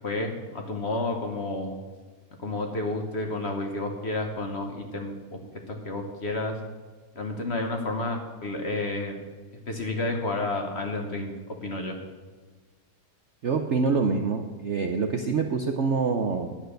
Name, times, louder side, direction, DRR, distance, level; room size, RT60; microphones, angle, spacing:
voice 1, 0.0-1.8 2.4-5.2 5.7-6.6 7.1-9.2 9.7-12.0, left 2 dB, 40° left, 3 dB, 1.3 m, -30 dB
voice 2, 13.4-16.5, right 4 dB, 55° right, 4 dB, 0.8 m, -26 dB
10.5 x 9.1 x 6.5 m, 1.4 s
omnidirectional pair, 2.0 m